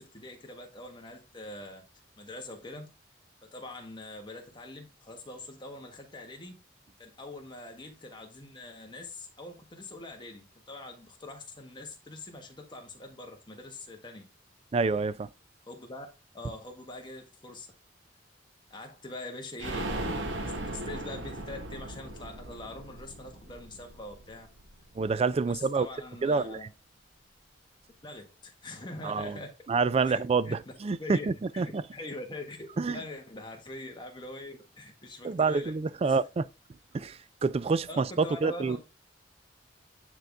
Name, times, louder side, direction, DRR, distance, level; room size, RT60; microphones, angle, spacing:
voice 1, 0.0-1.8 2.2-2.9 3.4-6.6 7.0-14.2 15.6-16.1 16.3-17.7 18.7-20.0 20.4-24.5 25.5-26.7 28.0-29.5 30.0-30.6 31.0-35.7 36.0-36.2 37.9-38.8, left 2 dB, 25° left, 1.5 m, -43 dB
voice 2, 14.7-15.3 25.0-25.9 26.2-26.6 29.0-29.4 29.7-31.8 32.8-33.0 35.2-36.5 36.9-38.8, right 4 dB, 35° right, 0.3 m, -27 dB
sound 1, 19.6-25.2 25.5-25.6 25.9-26.0, right 1 dB, 85° right, 1.3 m, -38 dB
9.1 x 3.9 x 3.5 m
head